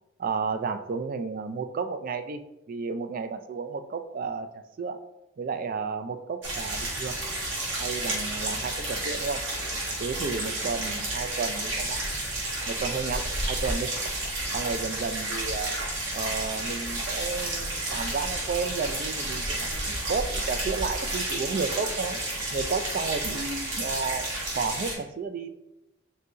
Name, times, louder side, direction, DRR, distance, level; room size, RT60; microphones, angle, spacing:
voice 1, 0.2-2.4 2.7-4.5 4.8-5.0 5.4-7.2 7.8-9.4 10.0-12.0 12.7-14.2 14.5-15.8 16.1-22.2 22.5-25.5, right 4 dB, 45° right, 7 dB, 0.3 m, -32 dB
sound 1, 6.4-24.9, right 1 dB, 75° right, 1.5 m, -31 dB
4.0 x 2.7 x 3.7 m, 0.90 s
head